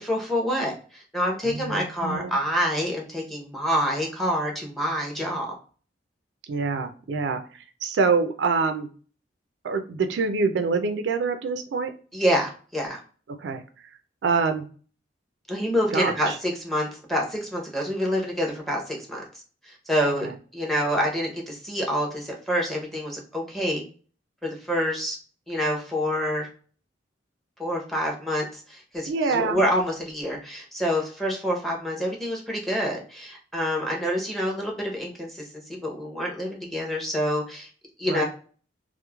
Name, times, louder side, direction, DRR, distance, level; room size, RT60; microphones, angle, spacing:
voice 1, 0.0-5.5 12.1-13.0 15.5-19.2 19.7-20.3 20.5-23.8 24.4-25.2 25.5-26.5 27.6-35.4 35.7-37.7 38.0-38.2, equal, ahead, -1 dB, 0.6 m, -27 dB
voice 2, 1.4-2.4 6.5-8.9 9.6-11.9 13.4-13.9 14.2-14.6 15.9-16.4 20.2-20.3 29.1-29.6 38.0-38.2, right 4 dB, 75° right, 7 dB, 0.4 m, -26 dB
3.0 x 2.0 x 2.2 m, 0.41 s
head